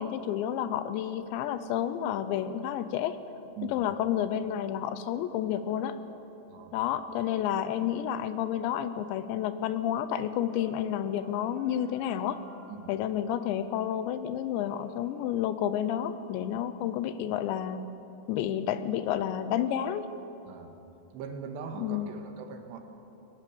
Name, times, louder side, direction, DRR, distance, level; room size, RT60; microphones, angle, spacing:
voice 1, 0.0-3.2 3.7-6.0 6.7-12.4 12.9-17.8 18.3-20.1 21.8-22.1, left 10 dB, 80° left, 12 dB, 2.9 m, -30 dB
sound 1, 10.4-13.1 14.4-15.5, equal, 45° right, 3.7 m, -55 dB
voice 2, 21.1-22.8, right 6 dB, 70° right, 5 dB, 3.4 m, -41 dB
22.0 x 20.5 x 7.1 m, 3.0 s
omnidirectional pair, 5.6 m